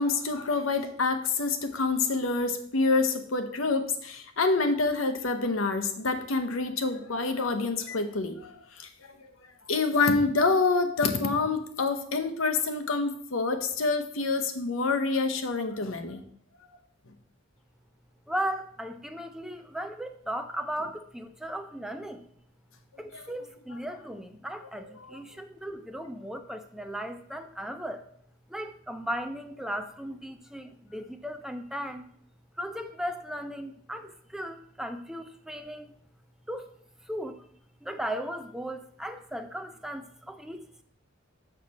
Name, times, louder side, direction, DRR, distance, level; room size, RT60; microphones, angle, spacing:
voice 1, 0.0-8.9 9.7-16.2 23.1-23.2 25.1-25.2, left 3 dB, 75° left, 8 dB, 0.9 m, -27 dB
voice 2, 18.3-22.3 23.0-28.1 28.5-32.0 32.6-35.9 36.5-36.7 37.0-37.4 37.8-40.8, equal, ahead, 7 dB, 0.4 m, -36 dB
6.6 x 6.3 x 4.1 m, 0.62 s
head